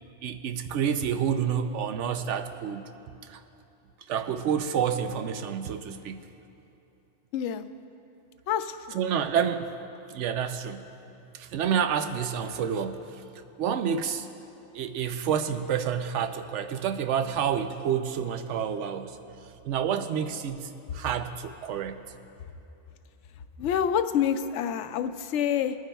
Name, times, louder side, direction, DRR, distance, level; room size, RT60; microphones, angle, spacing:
voice 1, 0.2-2.8 3.3-3.4 4.1-6.2 8.9-9.7 10.1-10.9 11.3-13.0 13.6-14.3 14.7-19.2 19.6-22.0, right 8 dB, 80° right, 9 dB, 0.9 m, -29 dB
voice 2, 7.3-7.7 8.5-9.0 23.6-25.8, left 8 dB, 80° left, 10 dB, 0.9 m, -27 dB
24.0 x 9.4 x 2.3 m, 2.8 s
omnidirectional pair, 1.2 m